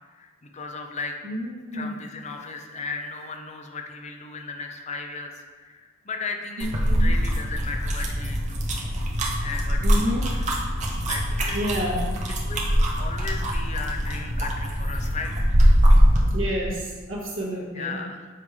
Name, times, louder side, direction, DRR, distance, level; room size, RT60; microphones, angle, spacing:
voice 1, 0.1-1.2 1.7-8.7 9.4-10.5 11.1-11.6 12.4-15.5 17.7-18.3, left 4 dB, 35° left, 3 dB, 0.6 m, -36 dB
voice 2, 1.2-1.9 6.6-7.1 9.8-10.2 11.5-12.0 16.3-18.0, equal, 75° right, -3 dB, 1.5 m, -29 dB
sound 1, 6.6-16.3, equal, 35° right, 0.9 m, -22 dB
7.3 x 3.3 x 4.9 m, 1.5 s
head